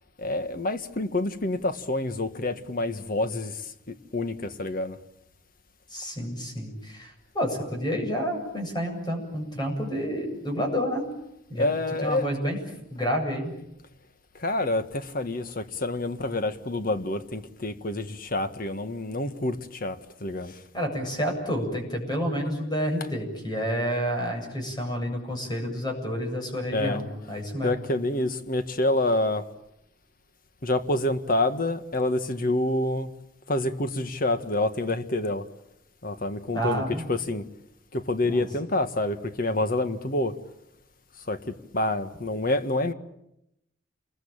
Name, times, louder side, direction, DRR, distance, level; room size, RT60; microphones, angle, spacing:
voice 1, 0.2-5.0 11.6-12.3 14.4-20.6 26.7-29.5 30.6-33.1 33.5-35.5 36.0-37.5 37.9-40.4 41.3-42.9, left 2 dB, 50° left, 1.7 m, -28 dB
voice 2, 5.9-11.1 11.5-11.7 12.0-12.6 12.9-13.5 20.7-27.7 36.5-37.0 38.2-38.4, equal, 25° left, 7.9 m, -29 dB
28.5 x 21.5 x 8.9 m
head